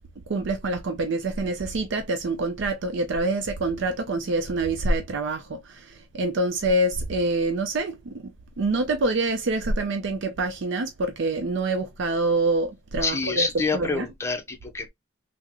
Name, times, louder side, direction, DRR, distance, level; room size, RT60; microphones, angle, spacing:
voice 1, 0.3-13.5 13.7-14.1, right 2 dB, 70° right, 0.5 m, -26 dB
voice 2, 13.0-14.9, left 4 dB, 15° left, 0.6 m, -27 dB
3.6 x 2.0 x 2.9 m
head